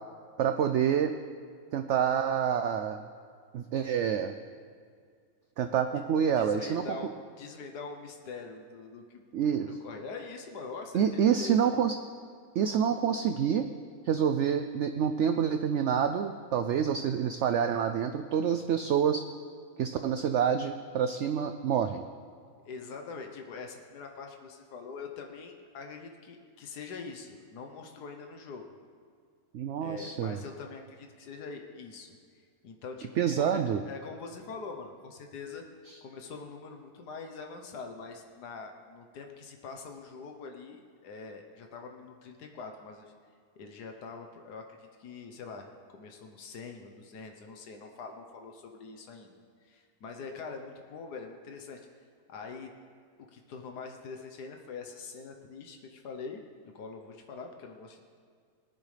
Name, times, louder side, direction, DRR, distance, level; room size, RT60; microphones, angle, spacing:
voice 1, 0.4-1.1 1.7-3.0 3.5-4.3 5.6-7.0 9.3-9.8 10.9-11.9 12.5-13.7 14.0-19.2 19.8-22.0 29.5-30.4 33.2-33.8, right 8 dB, 70° right, 8 dB, 0.7 m, -27 dB
voice 2, 6.4-9.2 9.7-11.9 22.6-28.7 29.8-35.6 36.0-43.1 43.6-51.8 52.3-52.7 53.3-56.4 56.7-58.0, left 4 dB, 90° left, 3 dB, 1.5 m, -44 dB
19.5 x 10.5 x 3.3 m, 2.1 s
omnidirectional pair, 1.7 m